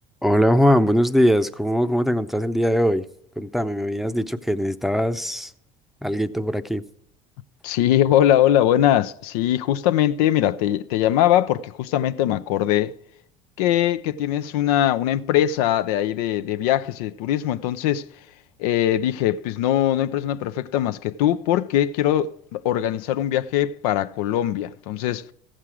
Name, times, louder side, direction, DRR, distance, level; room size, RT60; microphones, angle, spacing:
voice 1, 0.2-3.0 3.4-5.5 6.0-6.8, equal, ahead, 0.6 m, -21 dB
voice 2, 7.6-12.9 13.6-18.0 18.6-25.2, left 12 dB, 80° left, 0.5 m, -21 dB
14.5 x 7.5 x 4.8 m
supercardioid pair, 85°, 19 cm